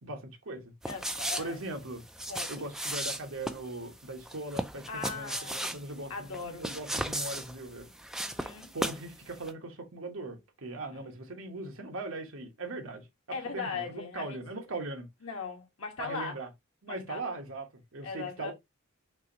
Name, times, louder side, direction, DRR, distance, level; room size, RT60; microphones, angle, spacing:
voice 1, 0.0-0.7 1.4-2.0 2.5-7.9 8.7-15.1 16.0-16.5 16.8-18.5, right 2 dB, 70° right, 1.1 m, -40 dB
sound 1, 0.8-9.1 9.4-9.5, right 1 dB, ahead, 0.3 m, -36 dB
voice 2, 0.9-1.6 2.3-2.7 4.9-6.7 8.2-8.7 10.9-11.1 13.3-14.4 14.7-14.8 15.2-16.4 16.9-17.4 18.0-18.5, left 5 dB, 80° left, 1.4 m, -39 dB
5.9 x 2.6 x 2.9 m
head